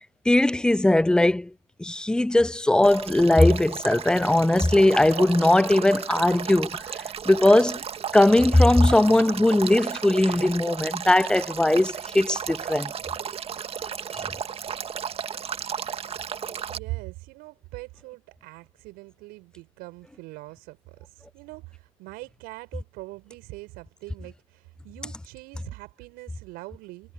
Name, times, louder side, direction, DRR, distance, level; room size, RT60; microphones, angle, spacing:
voice 1, 0.3-1.5 1.8-6.8 7.3-7.8 8.1-12.9, left 1 dB, 5° left, 0.5 m, -19 dB
Male speech man speaking / Stream / Trickle dribble, 2.8-16.8, right 7 dB, 35° right, 1.8 m, -34 dB
voice 2, 16.7-27.1, right 22 dB, 65° right, 5.8 m, -42 dB
hypercardioid pair, 75°, 17 cm